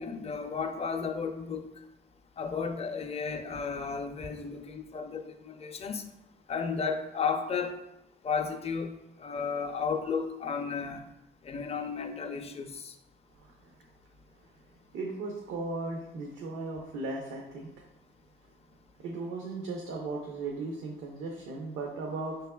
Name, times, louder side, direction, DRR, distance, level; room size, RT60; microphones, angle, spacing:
voice 1, 0.0-1.7 2.4-6.0 6.5-7.7 8.2-8.9 9.2-11.1 11.4-12.9, left 5 dB, 30° left, 5 dB, 0.5 m, -33 dB
voice 2, 13.3-13.8 14.9-17.9 19.0-22.5, right 3 dB, 85° right, -1 dB, 0.6 m, -37 dB
5.3 x 3.3 x 2.2 m, 0.93 s
cardioid pair, 90°, 20 cm